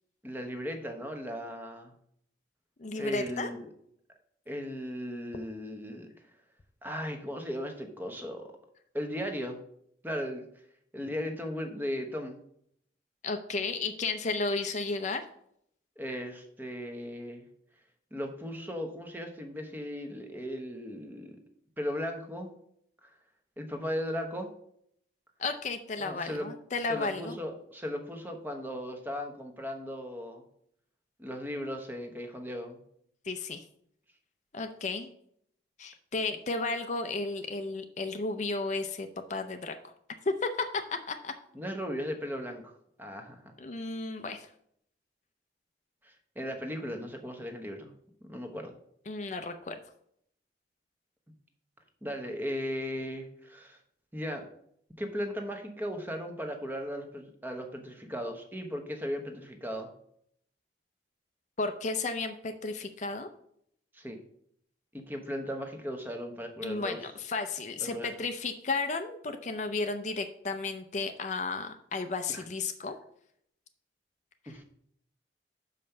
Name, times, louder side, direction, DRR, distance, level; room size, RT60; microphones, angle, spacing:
voice 1, 0.2-1.9 2.9-3.7 4.5-6.1 6.8-8.5 8.9-9.6 10.0-10.4 10.9-12.4 16.0-17.4 18.1-21.3 21.8-22.5 23.0-23.1 23.6-24.5 26.0-26.5 26.9-30.4 31.2-32.8 41.5-42.7 43.0-43.5 46.0-47.9 48.3-48.7 52.0-53.8 54.1-54.5 55.0-59.9 63.9-64.2 64.9-67.0 67.8-68.2 72.3-72.4 74.5-74.6, equal, 10° right, 4 dB, 1.0 m, -37 dB
voice 2, 2.8-3.5 13.2-15.2 25.4-27.4 33.3-33.6 34.5-35.1 35.8-39.8 40.3-41.3 43.6-44.5 49.1-49.7 61.6-63.3 66.6-72.9, left 3 dB, 40° left, 7 dB, 0.6 m, -33 dB
5.7 x 5.3 x 6.6 m, 0.70 s
head